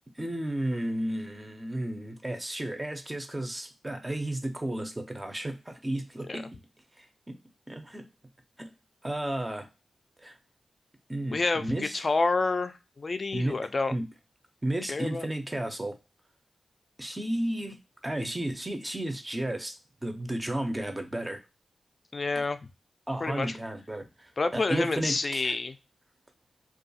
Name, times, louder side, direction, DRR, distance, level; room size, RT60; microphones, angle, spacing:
voice 1, 0.2-6.6 7.0-7.3 7.7-8.1 8.6-8.7 9.0-9.7 10.2-10.4 11.1-12.0 13.3-13.6 13.9-14.0 14.6-15.9 17.0-17.8 18.0-21.4 23.1-25.6, right 1 dB, 15° right, 5 dB, 0.5 m, -33 dB
voice 2, 11.3-13.9 14.9-15.3 22.1-22.6 23.2-23.5 24.4-25.7, left 3 dB, 40° left, 10 dB, 0.3 m, -28 dB
2.4 x 2.3 x 2.7 m, 0.26 s
cardioid pair, 75°, 0 cm